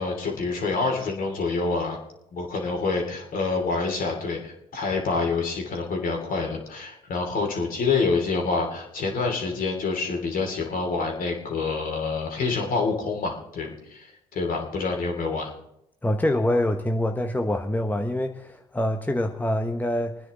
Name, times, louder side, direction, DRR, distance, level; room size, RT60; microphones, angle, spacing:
voice 1, 0.0-2.0 2.3-15.5, left 4 dB, 55° left, 2 dB, 3.0 m, -27 dB
voice 2, 16.0-20.2, left 1 dB, 10° left, 5 dB, 1.0 m, -25 dB
25.5 x 9.7 x 3.7 m, 0.82 s
hypercardioid pair, 50°, 17 cm